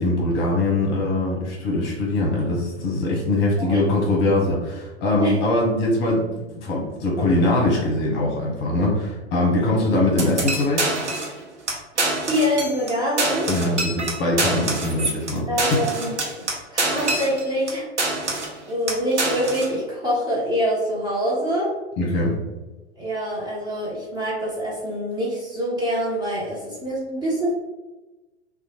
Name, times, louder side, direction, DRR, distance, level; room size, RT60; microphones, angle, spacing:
voice 1, 0.0-10.8 13.5-15.8 22.0-22.3, left 2 dB, 30° left, -2 dB, 0.9 m, -22 dB
sound 1, 10.2-11.4 11.7-11.8 12.0-12.9 13.2-17.7 18.0-18.6 18.9-19.7, right 2 dB, 80° right, 0.8 m, -25 dB
voice 2, 12.2-13.5 15.5-16.5 16.7-18.3 18.7-21.7 23.0-27.5, equal, 10° right, -7 dB, 0.6 m, -25 dB
3.0 x 2.2 x 2.9 m, 1.1 s
figure-of-eight pair, 95°, 34 cm